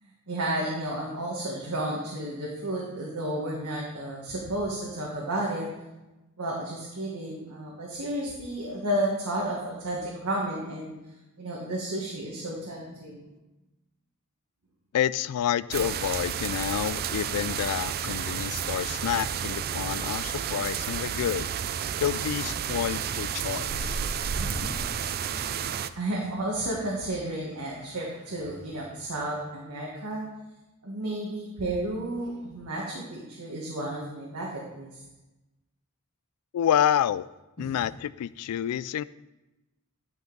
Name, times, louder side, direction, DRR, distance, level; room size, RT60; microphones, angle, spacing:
voice 1, 0.0-5.7 6.4-10.9 11.4-13.3 24.4-24.7 25.2-30.2 30.8-35.0 37.6-37.7, right 1 dB, 85° right, -3 dB, 1.5 m, -32 dB
voice 2, 14.9-24.1 36.5-37.3 37.6-39.0, left 10 dB, 85° left, 18 dB, 0.3 m, -29 dB
sound 1, 15.7-25.9, right 8 dB, 45° right, 0.4 m, -31 dB
11.0 x 5.2 x 3.9 m, 1.0 s
head